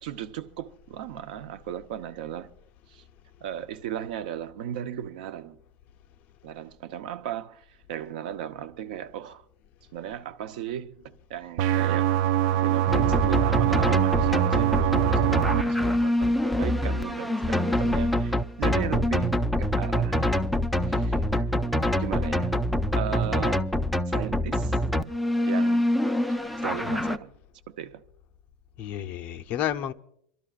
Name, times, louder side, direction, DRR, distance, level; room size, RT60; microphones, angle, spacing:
voice 1, 0.0-2.5 2.9-3.0 3.4-5.6 6.4-9.4 9.9-12.2 12.6-20.4 20.8-21.5 22.0-22.6 22.9-23.6 24.1-24.8 25.5-25.9 26.6-27.3 27.7-28.0, right 10 dB, 80° right, 0.9 m, -36 dB
sound 1, 11.6-15.6, right 12 dB, 65° right, 0.5 m, -23 dB
sound 2, 12.9-27.2, left 1 dB, ahead, 0.4 m, -25 dB
voice 2, 28.8-29.9, left 11 dB, 45° left, 0.7 m, -31 dB
28.5 x 12.5 x 2.5 m
supercardioid pair, 150°, 5 cm